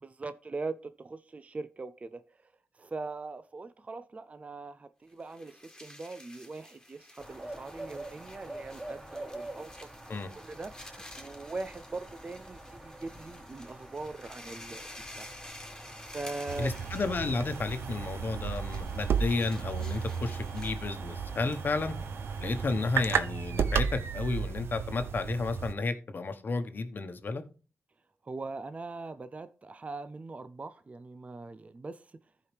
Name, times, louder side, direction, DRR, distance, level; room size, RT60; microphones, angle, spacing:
voice 1, 0.0-15.3 16.0-16.7 28.2-32.2, right 3 dB, 35° right, 0.5 m, -41 dB
sound 1, 5.1-20.9, left 1 dB, 15° left, 1.8 m, -51 dB
sound 2, 7.2-23.2, right 1 dB, 15° right, 2.7 m, -47 dB
sound 3, 16.5-25.7, right 7 dB, 85° right, 0.6 m, -33 dB
voice 2, 16.6-22.0 22.4-27.4, left 3 dB, 55° left, 1.1 m, -32 dB
14.0 x 4.9 x 3.3 m
cardioid pair, 70°, 4 cm